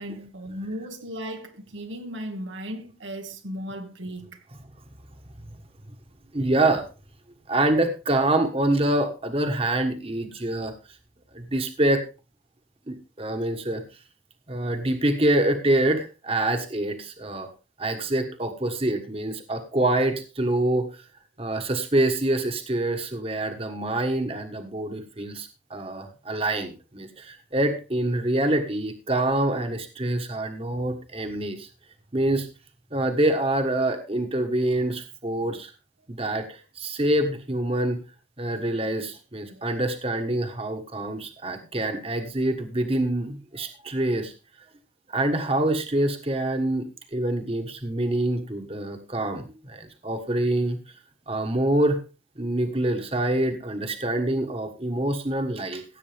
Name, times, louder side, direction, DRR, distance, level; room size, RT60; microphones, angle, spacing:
voice 1, 0.0-4.4 35.4-35.5 39.5-39.7, equal, 75° right, 1.5 m, -36 dB
voice 2, 6.3-6.8 7.5-10.7 11.3-12.0 12.9-13.8 14.5-17.5 17.8-20.9 21.4-31.7 32.1-32.5 32.9-35.7 36.1-38.0 38.4-44.3 45.1-46.9 47.1-50.8 51.3-52.0 52.4-55.8, right 1 dB, 30° right, 1.4 m, -26 dB
16.5 x 8.4 x 3.4 m
head